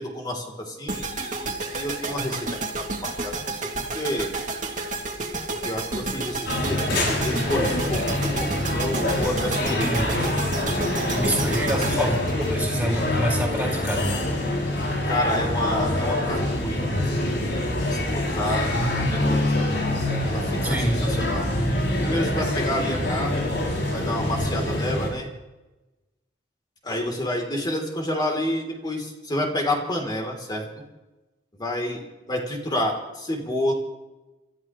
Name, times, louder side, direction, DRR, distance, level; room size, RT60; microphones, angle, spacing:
voice 1, 0.0-4.3 5.5-9.9 10.1-10.5 11.7-12.1 15.1-19.7 20.2-21.5 22.0-23.5 23.9-25.3 26.8-30.7 31.6-33.7, left 1 dB, 25° left, 1 dB, 3.3 m, -30 dB
sound 1, 0.9-13.1, right 3 dB, 45° right, 2.4 m, -31 dB
sound 2, 6.5-25.1, left 1 dB, 80° left, 6.8 m, -25 dB
voice 2, 9.8-10.2 11.1-12.2 12.5-14.4 20.6-21.1, right 1 dB, 10° right, -3 dB, 4.9 m, -27 dB
29.5 x 14.0 x 3.2 m, 1.1 s
head